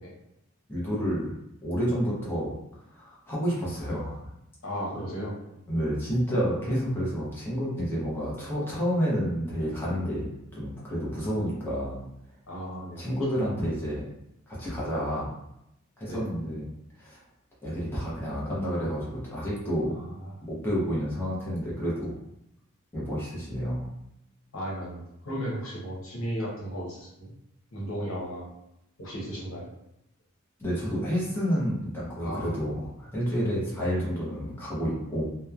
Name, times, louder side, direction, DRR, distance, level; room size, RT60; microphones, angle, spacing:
voice 1, 0.7-1.3 1.6-2.5 2.9-4.3 5.7-12.0 13.0-14.1 14.5-15.3 16.0-16.7 17.0-17.2 17.6-19.9 20.5-22.1 22.9-23.9 30.6-35.2, equal, 10° left, -7 dB, 0.7 m, -29 dB
voice 2, 4.6-5.6 12.5-13.0 16.1-16.2 19.8-20.4 24.5-27.3 27.7-28.5 29.0-29.7 32.2-32.5 33.4-33.5, equal, 80° left, -4 dB, 0.9 m, -35 dB
2.9 x 2.0 x 2.3 m, 0.83 s
head